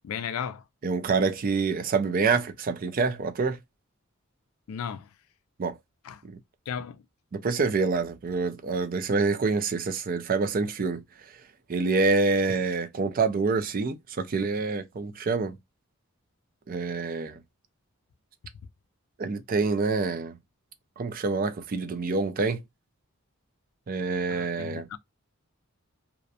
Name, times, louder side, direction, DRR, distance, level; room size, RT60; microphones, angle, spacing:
voice 1, 0.0-0.6 4.7-5.1 6.0-6.2 6.7-7.0 24.3-25.0, left 7 dB, 90° left, 0.4 m, -35 dB
voice 2, 0.8-3.6 5.6-5.7 6.2-6.4 7.3-11.0 11.7-15.6 16.7-17.4 19.2-20.4 21.0-22.6 23.9-24.9, right 4 dB, 40° right, 0.4 m, -26 dB
2.5 x 2.1 x 2.6 m
head